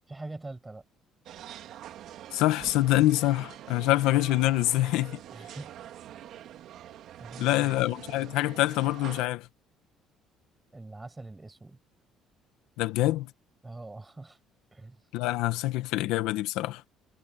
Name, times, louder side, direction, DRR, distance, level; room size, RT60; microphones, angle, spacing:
voice 1, 0.1-0.8 5.3-5.7 7.2-7.7 10.7-11.8 13.6-14.4 14.7-15.0, right 2 dB, 15° right, 7.3 m, -43 dB
sound 1, 1.3-9.3, right 11 dB, 65° right, 2.5 m, -45 dB
voice 2, 2.3-5.2 7.4-9.5 12.8-13.3 15.1-16.8, left 16 dB, 85° left, 1.3 m, -25 dB
cardioid pair, 105°, 0 cm